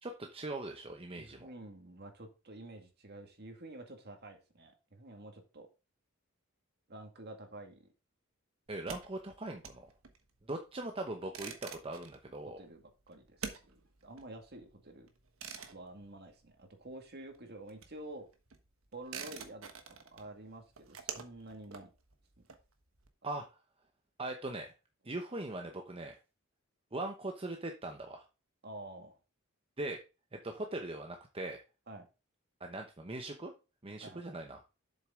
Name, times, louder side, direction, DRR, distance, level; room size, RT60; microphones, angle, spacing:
voice 1, 0.0-1.5 8.7-9.9 10.5-12.6 23.2-23.5 24.2-24.7 25.0-26.2 26.9-28.2 29.8-30.0 30.3-31.6 32.6-33.5 33.8-34.6, right 2 dB, 25° right, 0.9 m, -40 dB
voice 2, 1.1-5.7 6.9-7.9 12.4-15.1 15.7-18.3 18.9-21.9 22.4-22.5 28.6-29.1 31.9-32.1 34.0-34.4, right 1 dB, 50° right, 2.0 m, -49 dB
sound 1, 8.7-17.0 17.3-23.1, right 6 dB, 75° right, 1.3 m, -48 dB
7.7 x 6.7 x 3.7 m
head